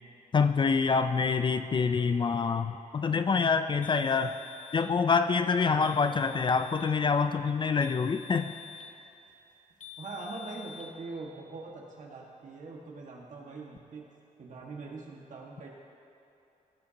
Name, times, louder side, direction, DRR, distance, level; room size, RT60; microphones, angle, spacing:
voice 1, 0.3-4.3 4.7-8.6, left 5 dB, 35° left, 10 dB, 0.4 m, -26 dB
sound 1, 3.8-4.9 5.8-6.9 7.8-8.9 9.8-10.9, left 8 dB, 60° left, 0.8 m, -48 dB
voice 2, 5.8-6.2 10.0-14.1 14.4-15.7, right 3 dB, 60° right, -1 dB, 1.7 m, -43 dB
18.0 x 7.8 x 2.9 m, 2.9 s
wide cardioid pair, 125°, 14 cm